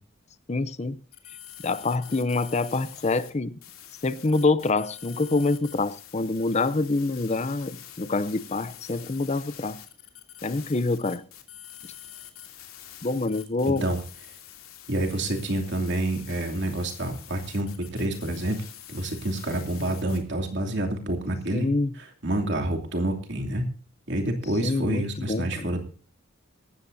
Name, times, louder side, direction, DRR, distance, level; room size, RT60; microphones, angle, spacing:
voice 1, 0.5-1.0 1.6-3.6 4.0-9.8 10.4-11.3 13.0-13.8 21.5-21.9 24.6-25.7, left 3 dB, 30° left, 0.6 m, -26 dB
sound 1, 1.1-3.3 3.6-20.2, left 11 dB, 85° left, 2.8 m, -46 dB
voice 2, 13.6-14.0 14.9-18.6 18.9-21.7 22.2-23.6 24.1-25.8, right 1 dB, 55° right, 2.8 m, -28 dB
18.0 x 14.0 x 2.7 m
head